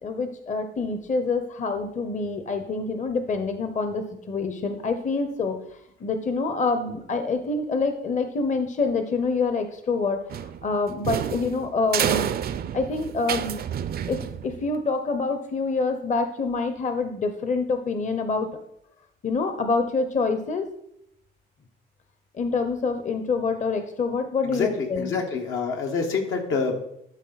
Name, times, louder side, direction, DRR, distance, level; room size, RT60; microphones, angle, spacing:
voice 1, 0.0-5.6 6.0-10.2 10.6-12.3 12.7-13.6 14.1-18.5 19.2-20.7 22.4-25.1, left 4 dB, 40° left, 8 dB, 0.8 m, -26 dB
sound 1, 10.3-14.8, right 9 dB, 50° right, 0.5 m, -29 dB
voice 2, 24.4-26.7, left 5 dB, 80° left, 1 dB, 1.4 m, -27 dB
11.5 x 4.0 x 4.0 m, 0.75 s
cardioid pair, 90°, 20 cm